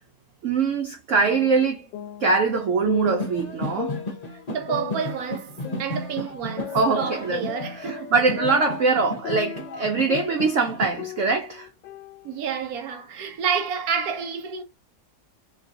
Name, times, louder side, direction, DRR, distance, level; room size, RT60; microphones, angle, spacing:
voice 1, 0.4-1.9 2.2-4.0 6.7-7.5 7.8-11.7, right 4 dB, 85° right, 0.6 m, -23 dB
sound 1, 1.2-3.3 3.8-6.2 6.6-10.7 11.0-13.0, left 13 dB, 80° left, 1.2 m, -37 dB
sound 2, 3.0-10.9, left 1 dB, 35° left, 0.7 m, -34 dB
voice 2, 4.5-8.1 12.2-14.6, right 7 dB, 70° right, 1.0 m, -29 dB
3.2 x 2.9 x 2.8 m
omnidirectional pair, 1.9 m